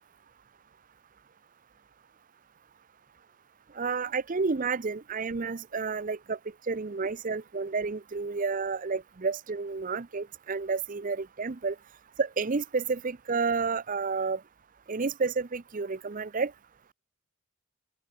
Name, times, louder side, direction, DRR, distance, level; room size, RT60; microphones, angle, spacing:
voice 1, 3.7-6.4 6.7-11.8 12.2-14.4 14.9-16.5, right 4 dB, 40° right, 0.6 m, -30 dB
open air
head